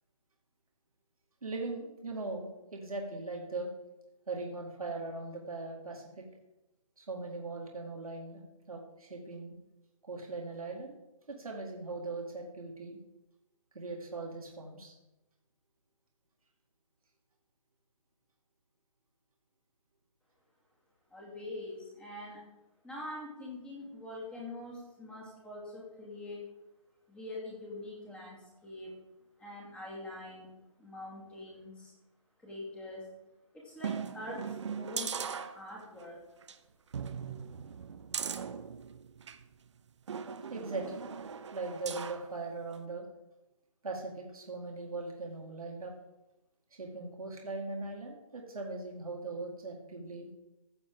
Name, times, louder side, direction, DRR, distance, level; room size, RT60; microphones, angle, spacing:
voice 1, 1.4-3.7 4.3-6.2 7.0-8.4 8.7-9.5 10.0-11.0 11.3-13.0 13.7-14.9 40.5-41.1 41.5-43.1 43.8-45.9 46.7-50.3, right 3 dB, 75° right, 0 dB, 2.2 m, -40 dB
voice 2, 21.1-22.4 22.8-26.4 27.1-28.9 29.4-30.5 30.8-31.9 32.4-33.1 33.5-35.1 35.5-36.2, left 1 dB, 5° left, -4 dB, 2.5 m, -44 dB
sound 1, 33.8-36.0 36.4-36.6 36.9-39.4 40.1-42.3 42.7-42.8, right 7 dB, 55° right, 0.7 m, -39 dB
15.0 x 7.2 x 3.7 m, 0.97 s
figure-of-eight pair, 145°, 18 cm